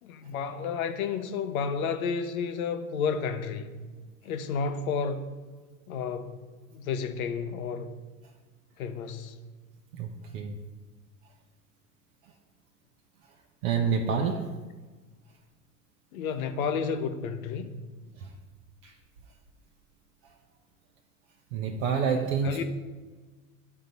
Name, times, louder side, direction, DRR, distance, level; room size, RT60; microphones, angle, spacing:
voice 1, 0.0-3.8 4.2-5.3 5.9-7.9 8.8-9.3 16.1-17.8 22.4-22.6, left 6 dB, 65° left, 0.9 m, -31 dB
voice 2, 10.0-10.5 13.6-14.5 18.8-18.9 21.5-22.6, right 6 dB, 60° right, 0.8 m, -28 dB
10.5 x 3.9 x 4.0 m
hypercardioid pair, 95°, 45 cm